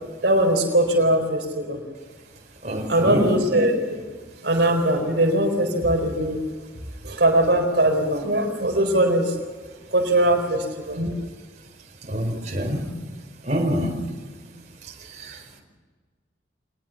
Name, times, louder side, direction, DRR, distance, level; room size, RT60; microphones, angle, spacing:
voice 1, 0.2-1.8 2.9-4.0 4.4-6.4 7.0-9.3 9.9-11.1, right 1 dB, 65° right, 3 dB, 4.2 m, -21 dB
voice 2, 2.6-3.3 12.1-12.8 13.4-13.9 15.2-15.6, equal, 40° right, 1 dB, 4.8 m, -26 dB
24.5 x 20.5 x 7.2 m, 1.5 s
head